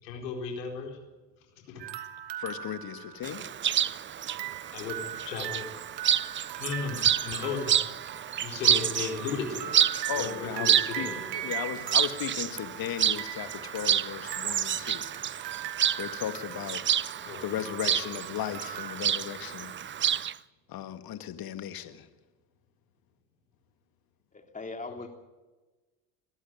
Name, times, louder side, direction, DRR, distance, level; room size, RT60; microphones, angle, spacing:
voice 1, 0.0-1.0 1.6-1.8 4.7-5.7 6.6-7.9 8.4-9.9 10.1-11.6 17.2-17.5 17.8-18.1 24.9-25.0, left 5 dB, 80° left, 1 dB, 4.5 m, -36 dB
sound 1, 1.8-3.8 4.3-19.0, right 13 dB, 85° right, 1.4 m, -40 dB
voice 2, 2.4-3.4 10.1-11.1 11.4-15.0 16.0-16.8 17.4-19.7 20.7-22.1, left 10 dB, 45° left, 10 dB, 2.1 m, -36 dB
Chirp tweet, 3.2-20.3, right 9 dB, 25° right, 0.6 m, -29 dB
voice 3, 24.3-25.1, left 3 dB, 15° left, 5 dB, 2.9 m, -39 dB
24.0 x 13.5 x 9.5 m, 1.2 s
hypercardioid pair, 80°, 50 cm